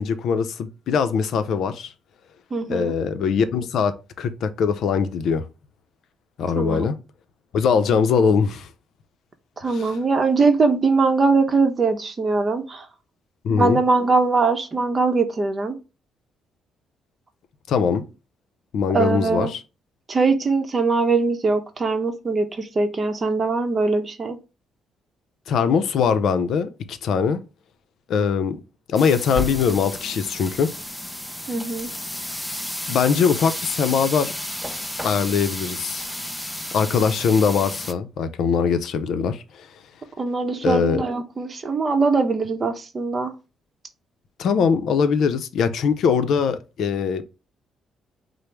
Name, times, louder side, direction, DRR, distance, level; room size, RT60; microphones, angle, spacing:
voice 1, 0.0-1.9 2.7-5.4 6.4-7.0 7.5-8.7 9.7-9.9 13.4-13.8 17.7-18.0 18.7-19.6 25.5-27.4 28.1-28.6 28.9-30.7 32.9-34.3 35.0-36.1 36.7-39.4 40.6-41.0 44.4-47.2, left 6 dB, 70° left, 0.5 m, -21 dB
voice 2, 2.5-2.9 6.6-6.9 9.6-12.9 13.5-15.8 18.9-19.5 20.1-24.4 31.5-31.9 40.2-43.3, right 4 dB, 35° right, 0.7 m, -21 dB
sound 1, 28.9-37.9, left 1 dB, 5° left, 0.5 m, -32 dB
5.0 x 2.0 x 4.4 m
cardioid pair, 90°, 0 cm